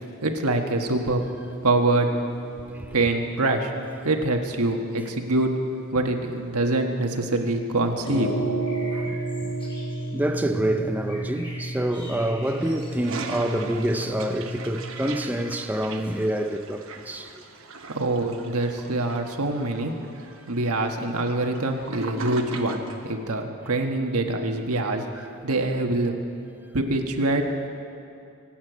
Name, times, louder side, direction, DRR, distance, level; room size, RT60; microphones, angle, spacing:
voice 1, 0.2-1.2 1.6-2.1 2.9-3.7 4.0-5.5 5.9-8.3 17.9-19.9 20.5-26.2 26.7-27.7, right 2 dB, 85° right, 1.4 m, -25 dB
sound 1, 1.0-15.3, right 2 dB, 70° left, 4.9 m, -34 dB
sound 2, 8.6-10.1 10.8-13.6, equal, 25° left, 3.7 m, -45 dB
voice 2, 10.1-17.4 25.1-25.3, right 1 dB, 5° right, 0.5 m, -27 dB
Toilet flush, 12.4-23.1, right 3 dB, 60° right, 1.1 m, -39 dB
24.5 x 8.8 x 6.2 m
head